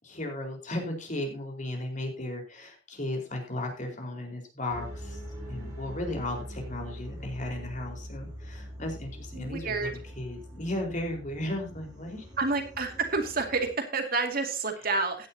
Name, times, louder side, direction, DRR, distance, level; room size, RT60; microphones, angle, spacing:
voice 1, 0.0-5.2 5.5-12.3, left 1 dB, 40° left, 2 dB, 4.4 m, -35 dB
sound 1, 4.7-13.7, equal, 20° right, 7.7 m, -43 dB
voice 2, 9.3-9.9 12.4-15.3, right 3 dB, 50° right, 5 dB, 2.3 m, -29 dB
16.0 x 10.5 x 2.8 m, 0.34 s
head